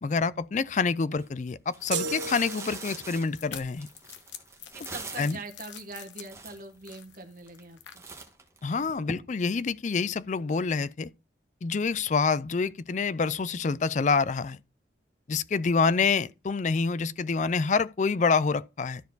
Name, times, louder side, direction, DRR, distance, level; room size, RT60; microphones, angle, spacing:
voice 1, 0.0-3.9 5.2-5.4 8.6-11.1 11.6-14.6 15.3-19.0, left 4 dB, 40° left, 0.4 m, -27 dB
sound 1, 1.1-1.3 1.7-5.5 6.0-6.1 6.3-7.0 7.5-7.7 8.0-9.1, right 3 dB, 15° right, 1.4 m, -42 dB
sound 2, 1.9-8.0, left 9 dB, 80° left, 1.1 m, -47 dB
sound 3, 1.9-3.3, right 5 dB, 80° right, 0.8 m, -34 dB
voice 2, 4.7-8.0, right 3 dB, 50° right, 1.4 m, -43 dB
13.0 x 4.6 x 3.9 m
head